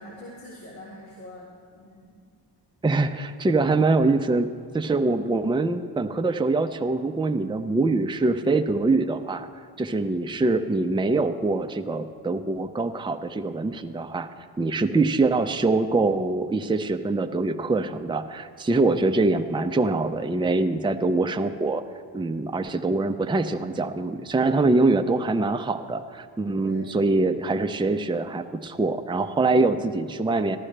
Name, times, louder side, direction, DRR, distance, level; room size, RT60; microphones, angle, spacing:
voice 1, 0.0-2.2 3.5-4.0 4.9-5.1 26.6-26.9, equal, 85° left, -7 dB, 2.1 m, -44 dB
voice 2, 2.8-9.5 9.8-14.3 14.6-21.8 22.1-30.6, right 3 dB, 10° right, 7 dB, 0.6 m, -24 dB
14.5 x 12.0 x 3.3 m, 2.1 s
hypercardioid pair, 40°, 50 cm